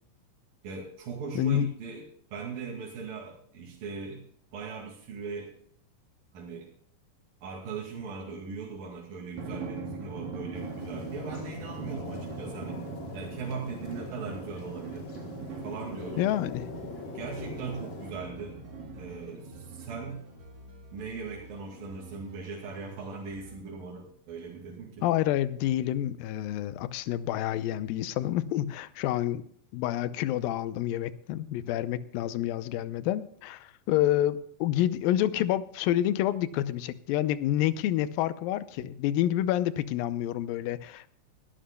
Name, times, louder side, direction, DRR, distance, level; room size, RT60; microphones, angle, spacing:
voice 1, 0.6-2.1 2.3-4.2 4.5-5.6 6.3-6.7 7.4-12.9 13.1-15.1 15.6-16.2 17.1-18.6 19.0-20.2 20.9-25.1 38.8-38.9, right 5 dB, 75° right, -2 dB, 3.9 m, -39 dB
voice 2, 1.4-1.7 16.2-16.6 25.0-29.5 29.7-41.1, left 12 dB, 85° left, 14 dB, 2.4 m, -28 dB
Drum, 9.4-20.4, right 3 dB, 60° right, 3.2 m, -41 dB
sound 1, 10.5-18.1, left 5 dB, 65° left, 1.2 m, -44 dB
sound 2, 16.4-23.6, right 1 dB, 35° right, 4.0 m, -50 dB
20.5 x 12.5 x 2.2 m, 0.62 s
omnidirectional pair, 4.1 m